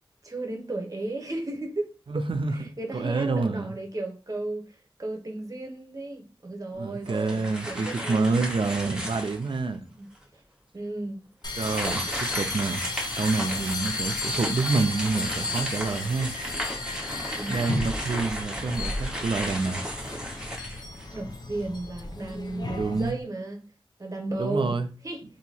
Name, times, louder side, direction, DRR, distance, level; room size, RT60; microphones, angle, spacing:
voice 1, 0.2-2.2 2.5-8.4 9.9-10.0 10.3-10.4 10.7-11.2 17.4-17.7 20.8-23.6 24.0-25.2, right 2 dB, 40° right, 1.0 m, -34 dB
voice 2, 2.1-3.7 6.7-9.9 11.6-12.8 13.2-16.3 17.5-19.8 22.8-23.2 24.4-24.9, right 3 dB, 65° right, 0.5 m, -27 dB
sound 1, 7.0-9.6 10.1-10.2 11.5-21.3, equal, 10° right, 1.3 m, -35 dB
sound 2, 11.4-23.1, left 2 dB, 50° left, 0.6 m, -34 dB
2.8 x 2.7 x 4.2 m
wide cardioid pair, 75°, 9 cm